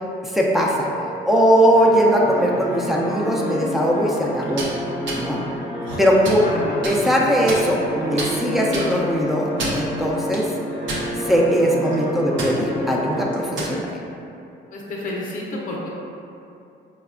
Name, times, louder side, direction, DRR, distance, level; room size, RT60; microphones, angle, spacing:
voice 1, 0.2-0.9 1.2-4.6 5.1-5.4 6.0-6.4 6.8-9.5 9.8-10.5 11.3-13.9, equal, ahead, -3 dB, 0.4 m, -19 dB
sound 1, 0.6-13.2, left 1 dB, 50° right, 1.1 m, -30 dB
sound 2, 4.4-4.7 5.1-5.2 5.8-6.4 6.8-7.0 7.5-7.9 8.2-8.3 8.7-8.9 9.4-9.9 10.3-10.4 10.9-11.4 11.8-12.0 12.4-12.5 13.3-13.8, right 1 dB, 75° right, 0.7 m, -28 dB
voice 2, 6.4-6.8 14.7-15.9, left 2 dB, 45° left, -3 dB, 0.6 m, -30 dB
4.6 x 2.1 x 2.4 m, 2.7 s
cardioid pair, 90°, 20 cm